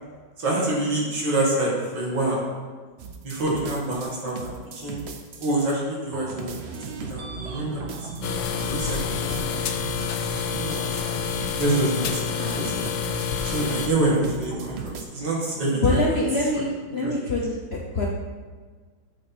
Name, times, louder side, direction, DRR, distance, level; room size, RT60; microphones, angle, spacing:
voice 1, 0.4-2.4 3.2-5.0 5.4-6.8 7.1-7.9 8.6-9.5 9.8-10.0 10.5-10.8 11.6-12.8 13.4-16.6 17.0-17.4, right 2 dB, 65° right, -4 dB, 2.6 m, -27 dB
sound 1, 3.0-5.7 6.1-15.0, right 5 dB, 90° right, 0.5 m, -37 dB
sound 2, 8.2-13.9, left 7 dB, 80° left, 1.4 m, -28 dB
voice 2, 15.7-18.1, left 2 dB, 50° left, -3 dB, 0.8 m, -24 dB
8.7 x 6.4 x 4.4 m, 1.5 s
omnidirectional pair, 2.1 m